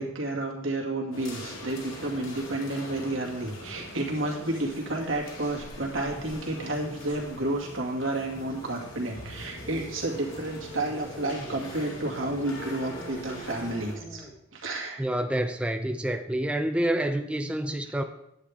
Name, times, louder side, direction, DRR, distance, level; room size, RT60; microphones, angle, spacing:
voice 1, 0.0-14.3 14.5-15.1 17.8-17.9, right 2 dB, 80° right, -1 dB, 2.1 m, -31 dB
sound 1, 1.1-14.0, left 1 dB, 80° left, 2.4 m, -42 dB
sound 2, 9.6-14.4, right 1 dB, 20° left, 1.5 m, -44 dB
voice 2, 15.0-18.0, right 1 dB, 5° right, 6 dB, 0.4 m, -28 dB
10.0 x 8.5 x 3.5 m, 0.84 s
head